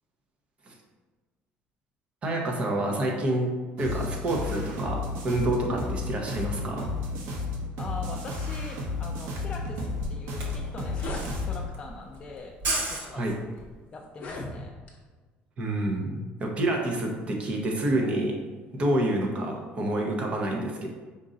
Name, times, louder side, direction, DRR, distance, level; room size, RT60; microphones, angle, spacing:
voice 1, 2.2-3.5 3.8-6.9 13.1-13.4 15.6-18.4 18.7-20.9, right 1 dB, 30° right, 1 dB, 0.7 m, -28 dB
sound 1, 3.8-11.7, left 3 dB, 85° right, 0.7 m, -32 dB
voice 2, 7.8-13.2 13.9-14.7, left 3 dB, 25° left, 0 dB, 0.3 m, -42 dB
Camera, 8.9-9.0 9.2-13.7, right 2 dB, 60° right, 1.0 m, -34 dB
sound 2, 10.2-10.3 10.5-11.3 12.1-12.4 13.1-13.2 14.0-15.0, left 2 dB, 40° left, 0.8 m, -38 dB
5.3 x 2.5 x 3.9 m, 1.4 s
cardioid pair, 155°, 4 cm